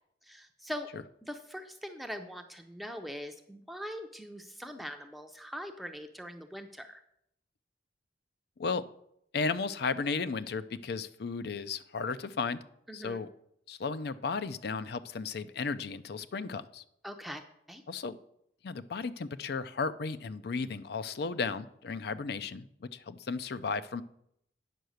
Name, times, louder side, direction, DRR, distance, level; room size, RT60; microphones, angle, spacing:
voice 1, 0.2-0.9 1.2-7.0 12.9-13.2 17.0-17.4 17.7-17.8, equal, ahead, 5 dB, 0.5 m, -42 dB
voice 2, 9.3-12.6 12.9-13.3 13.7-16.8 17.9-18.2 18.6-24.0, left 4 dB, 60° left, 14 dB, 0.5 m, -34 dB
9.2 x 5.6 x 6.4 m, 0.74 s
head